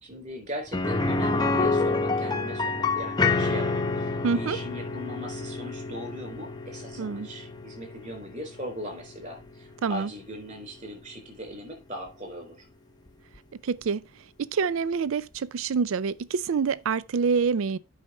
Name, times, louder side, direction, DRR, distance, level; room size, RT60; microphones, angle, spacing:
voice 1, 0.0-12.7, equal, 35° right, 3.9 m, -39 dB
sound 1, 0.7-10.5 10.8-10.9 13.3-13.4, left 3 dB, 20° left, 0.7 m, -28 dB
voice 2, 4.2-4.6 7.0-7.3 9.8-10.1 13.6-14.0 14.4-17.8, right 5 dB, 75° right, 0.4 m, -26 dB
8.4 x 5.6 x 5.4 m
head